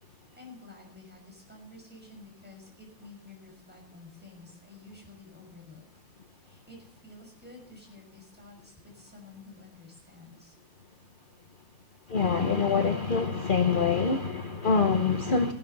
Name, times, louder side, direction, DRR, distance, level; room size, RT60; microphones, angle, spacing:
voice 1, 0.0-5.8 6.3-10.5, left 2 dB, 5° right, -1 dB, 6.1 m, -51 dB
voice 2, 12.1-15.5, left 5 dB, 40° left, 5 dB, 0.8 m, -25 dB
16.0 x 12.5 x 5.4 m, 0.66 s
omnidirectional pair, 2.1 m